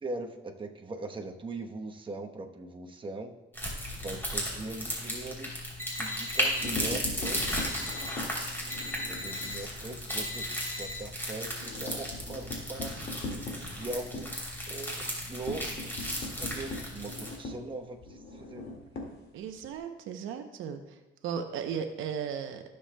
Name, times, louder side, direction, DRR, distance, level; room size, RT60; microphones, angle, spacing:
voice 1, 0.0-3.3 4.0-5.5 6.0-8.2 9.1-13.2 13.7-14.4 14.7-18.6, right 2 dB, 25° right, 2 dB, 1.0 m, -41 dB
sound 1, 3.5-17.4, equal, 10° left, 3.1 m, -35 dB
sound 2, 5.8-6.7 7.2-8.1 8.7-9.6 10.1-10.9, left 1 dB, 40° right, 2.8 m, -39 dB
sound 3, 6.5-9.6 10.0-10.2 10.5-10.6 10.9-19.8, left 2 dB, 55° left, 2.1 m, -41 dB
voice 2, 19.3-21.0 21.2-22.6, right 7 dB, 90° right, 7 dB, 0.8 m, -36 dB
15.5 x 6.9 x 2.2 m, 1.1 s
cardioid pair, 90°, 20 cm